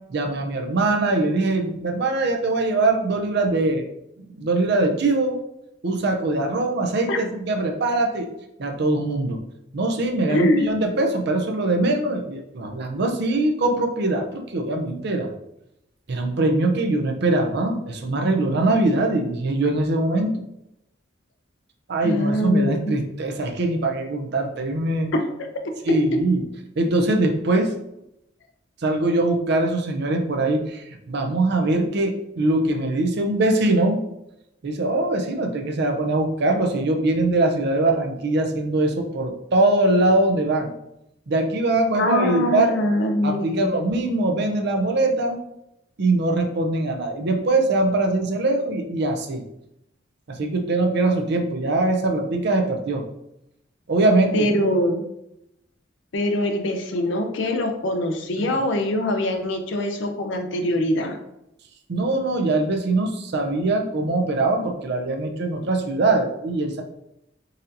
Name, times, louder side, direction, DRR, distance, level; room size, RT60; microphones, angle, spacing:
voice 1, 0.1-3.9 4.4-5.4 5.8-8.3 8.6-9.4 9.7-15.3 16.1-20.4 21.9-25.1 25.9-26.5 26.8-27.8 28.8-34.0 34.6-40.7 41.3-42.8 43.2-45.4 46.0-49.4 50.3-53.0 53.9-54.5 58.4-58.5 61.9-66.8, right 2 dB, 60° right, 3 dB, 0.5 m, -22 dB
voice 2, 10.3-10.7 22.0-22.9 25.1-25.2 25.9-26.0 42.0-43.7 54.3-55.0 56.1-61.2, left 1 dB, 70° left, 5 dB, 0.5 m, -23 dB
4.0 x 2.7 x 2.6 m, 0.84 s
head